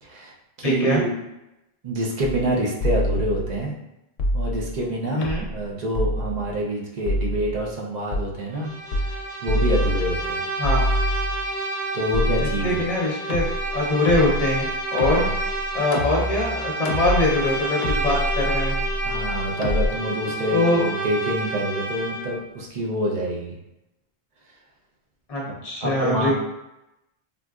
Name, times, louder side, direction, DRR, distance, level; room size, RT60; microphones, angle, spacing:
voice 1, 0.0-1.1 1.8-3.7 4.3-8.7 9.4-10.4 11.9-12.8 15.1-15.3 19.0-23.5 25.8-26.3, right 1 dB, 50° right, -3 dB, 0.7 m, -26 dB
voice 2, 0.6-1.0 5.2-5.4 10.6-10.8 12.4-13.5 13.7-15.3 15.7-18.8 20.5-20.8 25.3-26.3, left 1 dB, 40° left, -4 dB, 0.7 m, -23 dB
sound 1, 2.2-2.5 2.8-3.6 4.2-4.8 5.2-5.6 5.9-6.6 7.1-7.7 8.1-8.3 8.9-9.2 9.5-10.3 10.6-11.5 12.1-12.9 13.3-19.9, equal, 70° left, 0.8 m, -26 dB
Bowed string instrument, 8.5-22.4, right 2 dB, 85° right, 1.0 m, -30 dB
3.7 x 2.4 x 2.3 m, 0.90 s
omnidirectional pair, 1.0 m